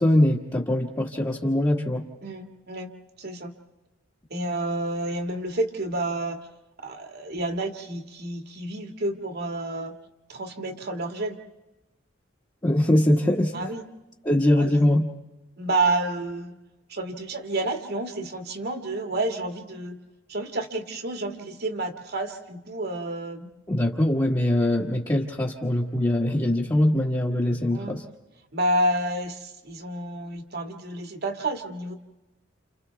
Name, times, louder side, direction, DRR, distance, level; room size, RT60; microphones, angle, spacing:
voice 1, 0.0-2.0 12.6-13.7 14.2-15.1 23.7-28.0, left 1 dB, 20° left, -4 dB, 1.5 m, -22 dB
voice 2, 2.2-2.9 3.2-3.5 4.3-6.4 6.8-9.9 10.3-11.4 13.5-13.8 14.6-14.9 15.6-16.5 16.9-20.0 20.3-23.5 27.7-28.0 28.5-31.9, right 2 dB, 55° right, 4 dB, 2.1 m, -29 dB
29.5 x 29.5 x 3.5 m, 1.0 s
head